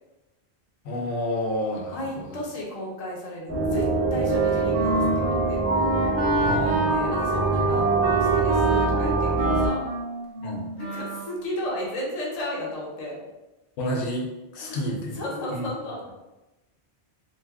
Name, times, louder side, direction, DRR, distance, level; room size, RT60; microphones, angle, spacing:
voice 1, 0.8-2.0 6.4-6.9 10.4-10.7 13.8-15.2 15.5-15.6, left 1 dB, 90° left, 0 dB, 0.9 m, -29 dB
voice 2, 1.9-5.6 6.9-9.9 10.7-13.2 14.6-16.1, left 1 dB, 40° left, -4 dB, 0.8 m, -34 dB
sound 1, 3.5-9.7, right 3 dB, 15° right, 0.6 m, -24 dB
Wind instrument woodwind instrument, 4.2-11.3, right 2 dB, 60° right, 0.7 m, -28 dB
2.6 x 2.2 x 3.4 m, 1.0 s
omnidirectional pair, 1.1 m